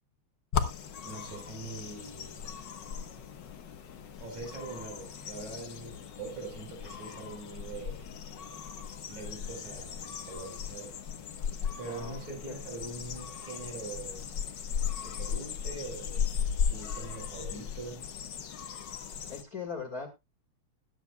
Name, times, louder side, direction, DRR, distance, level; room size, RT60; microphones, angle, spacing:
sound 1, 0.5-19.4, left 7 dB, 55° left, 1.3 m, -37 dB
voice 1, 1.1-2.5 4.2-8.1 9.1-11.0 11.8-14.3 15.0-16.3 16.7-18.0, right 4 dB, 70° right, 3 dB, 5.9 m, -43 dB
voice 2, 11.8-12.6 19.3-20.1, left 5 dB, 35° left, 3 dB, 1.9 m, -40 dB
21.0 x 8.1 x 2.3 m, 0.24 s
omnidirectional pair, 3.3 m